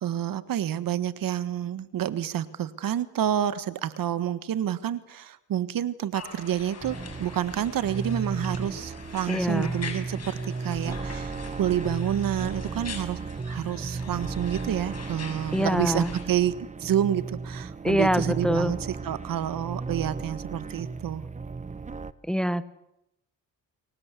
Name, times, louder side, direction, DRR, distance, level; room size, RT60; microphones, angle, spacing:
voice 1, 0.0-13.2 13.4-21.2, right 10 dB, 65° right, 14 dB, 1.6 m, -29 dB
sound 1, 6.1-16.2, left 5 dB, 45° left, 7.0 m, -43 dB
sound 2, 6.8-22.1, right 4 dB, 20° right, 1.1 m, -35 dB
voice 2, 9.3-9.7 15.5-16.1 17.8-18.7 22.3-22.6, equal, ahead, 14 dB, 1.3 m, -24 dB
29.0 x 23.0 x 8.4 m, 0.83 s
cardioid pair, 105°, 36 cm